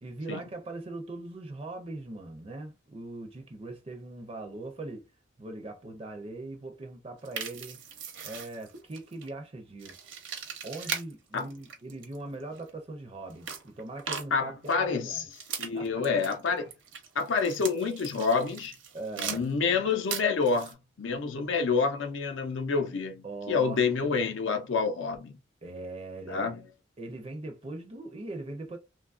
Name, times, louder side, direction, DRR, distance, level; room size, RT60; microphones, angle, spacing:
voice 1, 0.0-5.1 5.4-7.8 8.2-10.0 10.6-15.3 15.7-16.2 18.9-19.5 23.2-23.8 25.6-26.5 27.0-28.8, right 2 dB, 30° right, 0.4 m, -40 dB
sound 1, 7.2-9.3 9.8-11.1 11.4-12.7 13.3-14.8 15.3-19.5 19.7-20.7, right 6 dB, 70° right, 0.7 m, -39 dB
voice 2, 14.3-15.2 15.6-16.7 17.1-18.7 19.2-25.4 26.3-26.6, left 5 dB, 70° left, 0.5 m, -28 dB
2.9 x 2.3 x 2.4 m
head